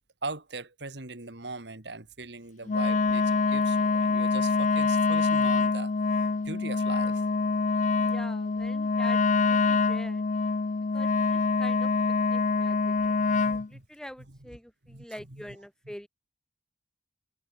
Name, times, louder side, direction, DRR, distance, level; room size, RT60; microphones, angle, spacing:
voice 1, 0.2-5.9 6.2-7.2 13.3-13.9 14.3-14.4 14.9-15.6 15.9-16.0, right 3 dB, 65° right, 2.5 m, -40 dB
Wind instrument woodwind instrument, 2.7-13.7, left 4 dB, 40° left, 0.5 m, -25 dB
voice 2, 8.0-9.2 9.4-10.2 10.9-11.9 12.3-16.1, equal, 5° left, 1.0 m, -45 dB
head